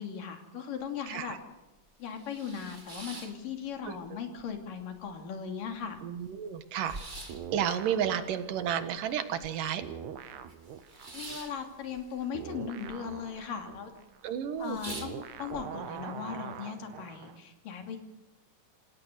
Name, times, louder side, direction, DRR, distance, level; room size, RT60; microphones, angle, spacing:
voice 1, 0.0-1.4 2.0-6.0 11.1-13.9 14.6-18.0, left 7 dB, 90° left, 5 dB, 4.3 m, -38 dB
sound 1, 0.8-0.9 1.3-1.4 1.9-4.1 4.4-5.1 5.5-5.6 5.7-9.9 10.2-13.0 13.2-13.8 14.2-14.3 14.6-15.6, right 2 dB, 20° right, 1.7 m, -46 dB
voice 2, 1.1-1.4 3.9-4.0 6.0-7.0 7.5-9.8 14.2-14.8, right 9 dB, 85° right, 10 dB, 3.1 m, -31 dB
sound 2, 7.3-9.5 9.8-17.4, right 8 dB, 65° right, 2.5 m, -44 dB
28.0 x 17.5 x 6.7 m, 0.99 s
omnidirectional pair, 3.7 m